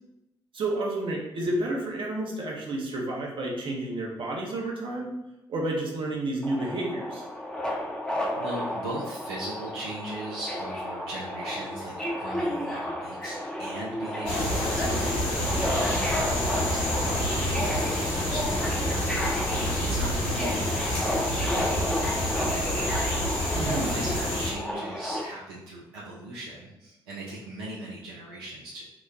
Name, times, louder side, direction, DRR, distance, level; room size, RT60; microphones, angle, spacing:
voice 1, 0.5-5.1 5.5-7.2 23.6-23.9, right 2 dB, 45° right, -2 dB, 0.9 m, -30 dB
Subway metro underground, 6.4-25.2, left 1 dB, 5° left, 0.7 m, -32 dB
voice 2, 8.0-28.8, right 1 dB, 75° right, -6 dB, 0.5 m, -40 dB
sound 1, 14.2-24.5, left 1 dB, 60° left, 1.2 m, -28 dB
2.9 x 2.1 x 3.6 m, 0.92 s
figure-of-eight pair, 40°, 12 cm